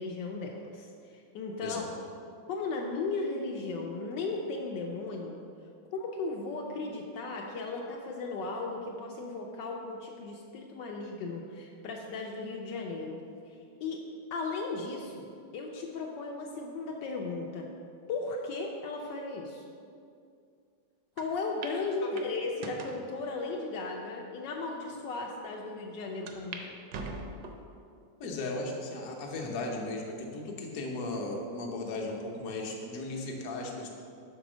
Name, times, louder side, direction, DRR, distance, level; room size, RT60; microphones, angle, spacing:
voice 1, 0.0-1.9 2.5-5.4 5.9-13.2 13.5-14.0 14.3-15.3 15.5-17.7 18.1-19.7 21.2-26.8, left 3 dB, 75° left, 0 dB, 1.2 m, -36 dB
sound 1, 21.2-21.3 21.6-21.8 22.2-23.0 23.7-23.8 24.5-24.6 24.9-25.0 26.3-26.6 26.9-27.7 28.2-28.7 29.2-29.3 30.4-30.9, right 3 dB, 70° right, 1.2 m, -42 dB
voice 2, 28.2-33.9, left 2 dB, 60° left, 0 dB, 1.2 m, -36 dB
6.1 x 4.1 x 6.0 m, 2.4 s
omnidirectional pair, 2.0 m